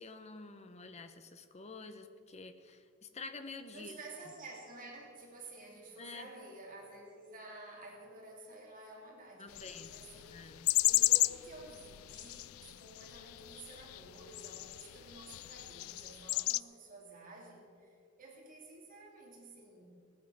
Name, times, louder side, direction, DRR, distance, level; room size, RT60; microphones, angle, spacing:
voice 1, 0.0-4.0 6.0-6.3 9.4-9.9 10.2-10.7, left 3 dB, 30° left, 9 dB, 0.9 m, -48 dB
voice 2, 3.7-10.5 10.9-19.9, right 2 dB, 40° right, -2 dB, 3.0 m, -52 dB
sound 1, 9.5-16.6, left 18 dB, 85° left, 0.3 m, -34 dB
17.5 x 9.7 x 6.2 m, 2.4 s
head